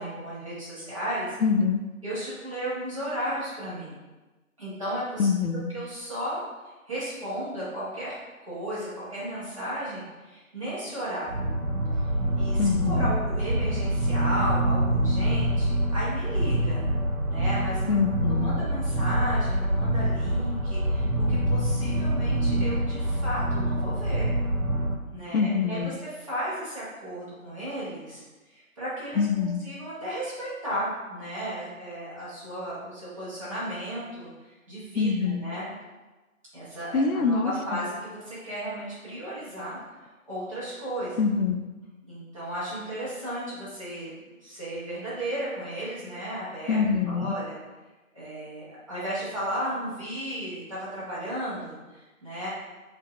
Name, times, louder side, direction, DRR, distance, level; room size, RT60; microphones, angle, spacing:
voice 1, 0.0-1.4 2.0-3.9 4.6-6.4 6.9-8.1 8.5-11.5 12.3-16.8 17.3-24.3 25.1-28.2 28.5-35.7 36.5-39.8 40.3-41.2 42.1-44.1 44.4-46.8 47.1-47.5 48.1-52.5, equal, 25° right, -12 dB, 1.3 m, -34 dB
voice 2, 1.4-1.8 5.2-5.7 12.6-13.2 17.9-18.6 25.3-26.0 29.2-29.6 34.9-35.5 36.9-37.8 41.2-41.6 46.7-47.4, left 5 dB, 80° left, 7 dB, 0.6 m, -25 dB
sound 1, 11.3-25.0, right 1 dB, 90° right, 1.0 m, -26 dB
5.0 x 2.7 x 3.1 m, 1.2 s
figure-of-eight pair, 175°, 42 cm